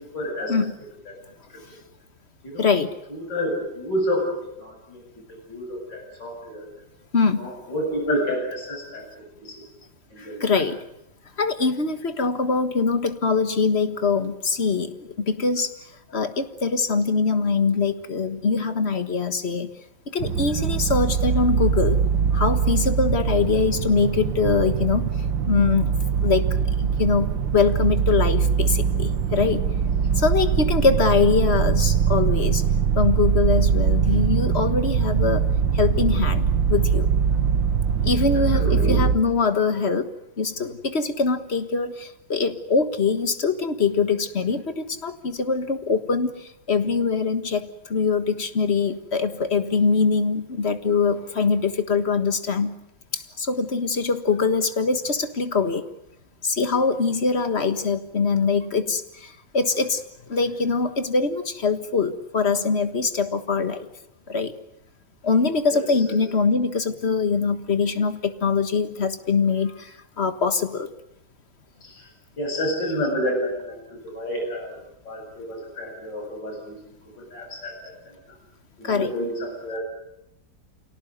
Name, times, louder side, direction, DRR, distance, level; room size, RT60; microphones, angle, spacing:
voice 1, 0.1-0.5 1.1-1.2 2.4-2.7 3.1-4.3 4.6-5.0 5.3-6.6 7.3-9.0 9.4-9.6 10.1-10.6 38.5-38.9 65.7-66.2 71.8-72.0 72.4-74.8 75.0-76.8 77.2-78.2 78.8-79.8, equal, 70° left, 2 dB, 8.1 m, -29 dB
voice 2, 2.6-2.9 7.1-7.5 10.2-10.8 11.4-15.7 16.1-19.7 20.1-22.0 22.3-25.1 25.5-25.9 26.2-29.6 30.2-32.6 32.9-35.5 35.7-37.1 38.0-40.1 40.4-46.3 46.7-52.8 53.1-55.8 56.4-60.0 60.3-63.9 64.3-64.5 65.2-70.9 78.8-79.1, left 4 dB, 35° left, 10 dB, 1.7 m, -23 dB
sound 1, 20.2-39.2, right 7 dB, 85° right, 2.1 m, -22 dB
28.0 x 18.0 x 9.4 m, 0.82 s
omnidirectional pair, 2.0 m